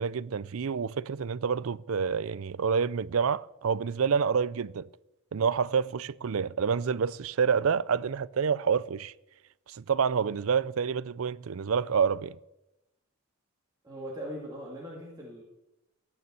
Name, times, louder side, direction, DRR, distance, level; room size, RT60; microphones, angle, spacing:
voice 1, 0.0-4.9 5.3-9.1 9.7-12.4, right 6 dB, 75° right, 0.5 m, -28 dB
voice 2, 13.8-15.4, equal, 20° right, 2.5 m, -40 dB
14.0 x 9.4 x 7.9 m
head